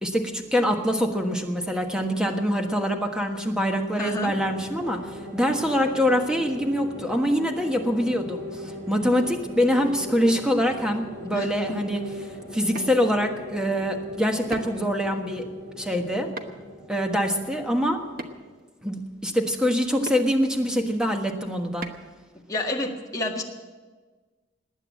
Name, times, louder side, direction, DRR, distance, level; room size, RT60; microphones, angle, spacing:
voice 1, 0.0-5.0 5.3-8.6 8.9-12.0 12.5-15.5 15.8-16.3 16.9-18.0 18.8-21.9, equal, 5° right, 3 dB, 1.4 m, -24 dB
voice 2, 4.0-4.3 11.3-11.5 22.5-23.4, left 2 dB, 20° left, -1 dB, 1.8 m, -29 dB
sound 1, 4.0-18.6, equal, 70° right, 4.3 m, -39 dB
sound 2, 12.5-12.9 14.5-14.9 16.4-16.7 18.2-18.6 20.1-20.2 21.8-22.1, right 2 dB, 50° right, 1.1 m, -36 dB
19.5 x 9.1 x 7.5 m, 1.3 s
head